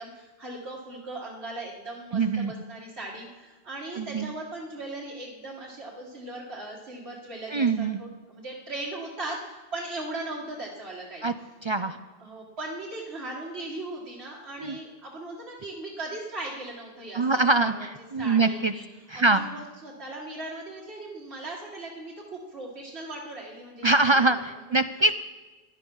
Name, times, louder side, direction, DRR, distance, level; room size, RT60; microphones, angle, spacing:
voice 1, 0.0-11.3 11.8-11.9 12.2-17.7 18.2-18.8 19.1-24.4, right 2 dB, 85° right, -5 dB, 2.1 m, -38 dB
voice 2, 2.1-2.5 4.0-4.3 7.5-8.0 11.2-11.3 11.6-12.0 14.6-14.8 17.1-18.7 19.1-19.5 23.8-25.2, right 3 dB, 45° right, 10 dB, 0.3 m, -23 dB
16.5 x 11.5 x 5.4 m, 1.2 s
omnidirectional pair, 1.0 m